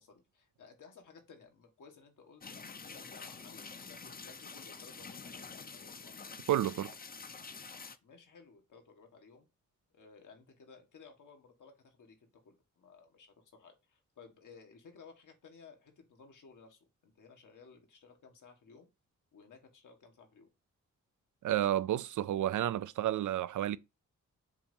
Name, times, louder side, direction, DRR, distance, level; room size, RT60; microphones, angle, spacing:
voice 1, 0.0-6.3 8.0-9.5 9.9-18.9 19.3-20.5, left 5 dB, 80° left, 1.8 m, -57 dB
sound 1, 2.4-8.0, left 5 dB, 30° left, 0.6 m, -47 dB
voice 2, 6.5-6.9 21.4-23.8, right 12 dB, 80° right, 0.5 m, -31 dB
7.2 x 2.9 x 5.3 m
cardioid pair, 90°, 30 cm